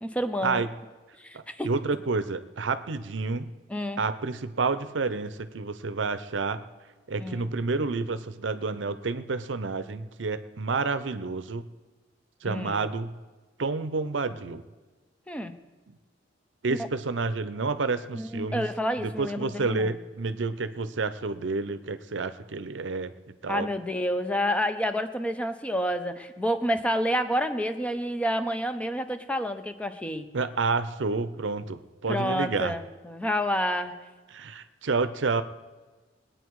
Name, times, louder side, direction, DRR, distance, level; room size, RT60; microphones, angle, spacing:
voice 1, 0.0-0.6 1.2-1.7 3.7-4.0 7.2-7.5 12.5-12.9 15.3-15.5 16.7-16.8 18.1-20.0 23.5-30.3 32.1-34.0, equal, 5° left, 8 dB, 0.7 m, -29 dB
voice 2, 1.3-3.5 4.0-6.6 7.1-11.6 12.4-13.1 13.6-14.6 16.6-18.6 19.0-23.7 30.3-32.7 34.3-35.4, right 4 dB, 75° right, 12 dB, 0.7 m, -29 dB
20.5 x 9.2 x 4.7 m, 1.3 s
head